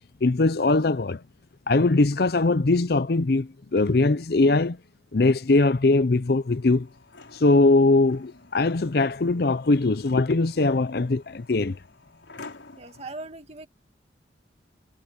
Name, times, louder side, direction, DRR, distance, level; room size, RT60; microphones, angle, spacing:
voice 1, 0.2-1.2 1.7-4.8 5.1-6.9 7.3-11.8, left 2 dB, 55° left, 0.6 m, -21 dB
sound 1, 6.2-13.0, left 3 dB, 85° left, 4.8 m, -50 dB
voice 2, 12.8-13.7, right 2 dB, 35° right, 2.4 m, -39 dB
head